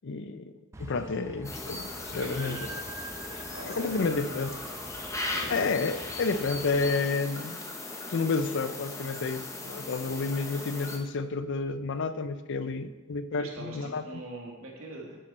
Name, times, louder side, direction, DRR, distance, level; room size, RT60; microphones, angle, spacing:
voice 1, 0.0-2.7 3.3-4.5 5.5-7.6 8.1-14.0, left 4 dB, 60° left, 12 dB, 0.5 m, -30 dB
sound 1, 0.7-7.0, right 2 dB, 15° right, 0.4 m, -45 dB
sound 2, 1.4-11.0, left 2 dB, 15° left, 0.8 m, -38 dB
voice 2, 2.1-2.6 3.5-4.4 5.3-5.8 13.3-15.2, right 2 dB, 80° right, -1 dB, 2.1 m, -42 dB
8.9 x 8.6 x 4.3 m, 1.2 s
head